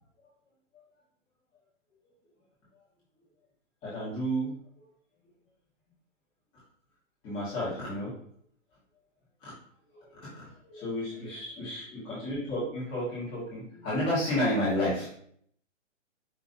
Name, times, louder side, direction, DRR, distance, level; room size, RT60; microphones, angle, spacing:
voice 1, 3.8-4.5 7.2-8.1 9.4-9.5 10.0-15.1, equal, 15° left, -9 dB, 1.4 m, -31 dB
5.2 x 2.9 x 2.7 m, 0.63 s
hypercardioid pair, 165°, 38 cm